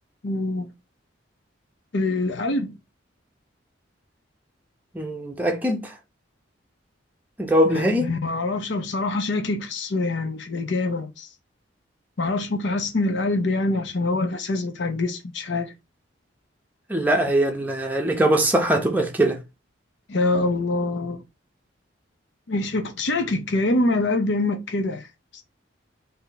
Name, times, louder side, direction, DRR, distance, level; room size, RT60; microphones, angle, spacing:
voice 1, 0.2-0.7 1.9-2.7 7.6-11.3 12.2-15.7 20.1-21.2 22.5-25.1 25.3-25.4, left 2 dB, 65° left, 0.7 m, -25 dB
voice 2, 4.9-5.9 7.4-8.1 16.9-19.4, right 1 dB, 10° right, 0.7 m, -21 dB
3.3 x 2.7 x 4.0 m
head